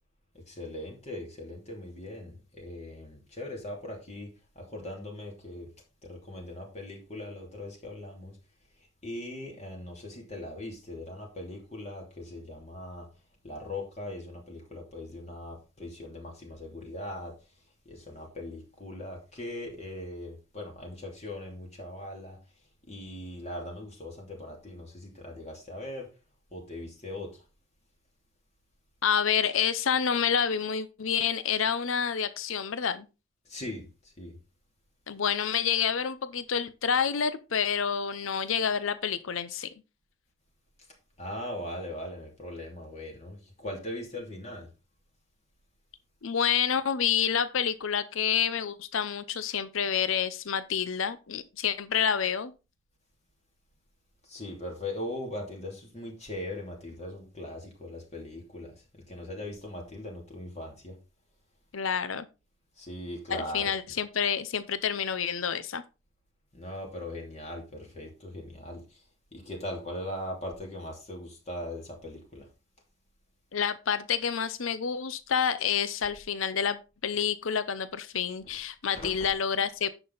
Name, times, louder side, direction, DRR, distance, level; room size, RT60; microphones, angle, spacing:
voice 1, 0.5-4.3 4.6-5.7 6.0-8.3 9.0-13.1 13.4-17.3 17.8-22.4 22.9-26.1 26.5-27.4 33.5-33.9 34.2-34.3 41.2-44.7 54.2-58.7 59.1-61.0 62.8-64.0 66.5-68.8 69.3-72.5 78.9-79.2, left 1 dB, 35° left, 2.7 m, -40 dB
voice 2, 29.0-33.1 35.1-39.7 46.2-52.5 61.7-62.3 63.3-65.8 73.5-79.9, left 7 dB, 75° left, 0.7 m, -28 dB
10.0 x 6.1 x 4.0 m
head